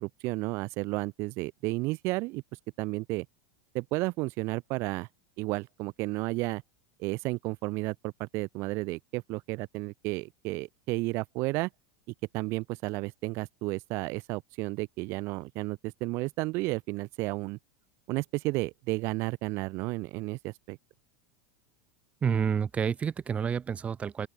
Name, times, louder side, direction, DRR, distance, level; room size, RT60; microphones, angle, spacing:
voice 1, 0.0-2.4 2.8-3.3 3.7-5.1 5.4-6.6 7.0-11.7 12.3-17.6 18.1-20.8, right 23 dB, 55° right, 1.3 m, -32 dB
voice 2, 22.2-24.3, right 7 dB, 25° right, 0.6 m, -29 dB
open air
hypercardioid pair, 95°, 5 cm